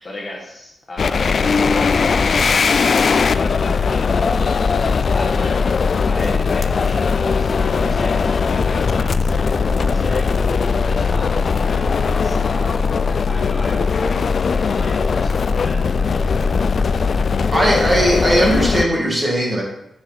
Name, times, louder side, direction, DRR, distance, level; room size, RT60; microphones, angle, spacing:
voice 1, 0.0-16.7, left 2 dB, 35° left, -3 dB, 1.8 m, -35 dB
sound 1, 1.0-18.8, left 5 dB, 50° left, 0.3 m, -19 dB
voice 2, 17.5-19.6, right 1 dB, 20° right, -3 dB, 2.3 m, -18 dB
7.1 x 6.6 x 4.1 m, 0.80 s
wide cardioid pair, 140°, 0 cm